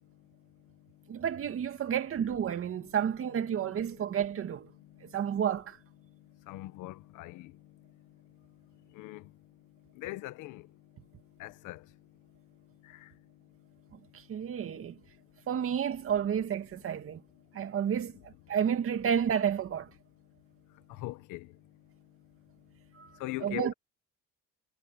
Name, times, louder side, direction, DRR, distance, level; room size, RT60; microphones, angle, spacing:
voice 1, 1.1-4.7 5.0-5.8 13.9-15.0 15.5-17.2 17.5-19.9 22.9-23.1 23.4-23.7, right 8 dB, 45° right, 2.2 m, -31 dB
voice 2, 6.5-7.5 8.9-9.3 9.9-10.7 11.4-11.8 12.8-13.1 20.9-21.5 23.2-23.7, left 18 dB, 90° left, 1.5 m, -40 dB
cardioid pair, 120°, 30 cm